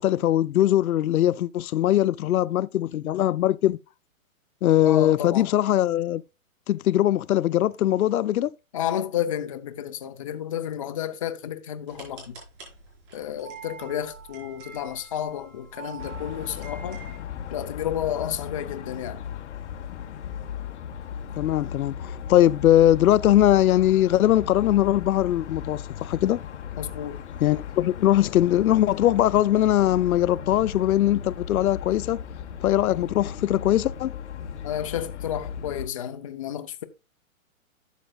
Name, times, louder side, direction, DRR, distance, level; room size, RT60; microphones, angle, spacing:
voice 1, 0.0-3.8 4.6-6.2 6.7-8.5 21.4-26.4 27.4-32.2 32.6-34.1, left 13 dB, 80° left, 0.6 m, -21 dB
voice 2, 4.8-5.5 8.7-12.3 13.1-17.0 17.5-19.2 26.8-27.2 34.6-36.8, left 10 dB, 25° left, 0.5 m, -31 dB
sound 1, 11.9-17.2, right 6 dB, 40° right, 4.8 m, -45 dB
sound 2, 16.0-35.9, left 8 dB, 55° left, 1.0 m, -37 dB
12.0 x 7.3 x 2.3 m
hypercardioid pair, 155°, 42 cm